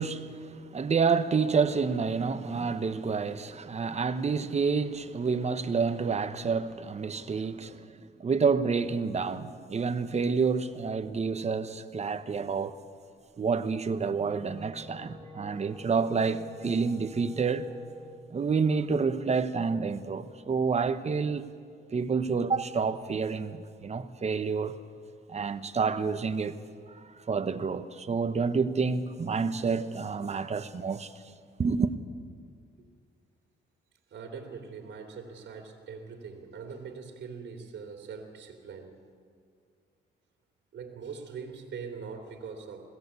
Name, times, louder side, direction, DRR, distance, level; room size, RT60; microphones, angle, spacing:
voice 1, 0.0-12.7 13.4-17.7 18.3-21.4 21.9-24.8 25.3-26.6 26.9-31.1 31.6-31.9, right 5 dB, 35° right, 1.1 m, -29 dB
Wind instrument woodwind instrument, 13.7-18.3, left 1 dB, 5° left, 2.7 m, -48 dB
voice 2, 14.7-15.3 32.8-32.9 34.1-39.0 40.7-42.9, right 5 dB, 60° right, 2.9 m, -42 dB
21.0 x 16.5 x 8.4 m
cardioid pair, 90°, 20 cm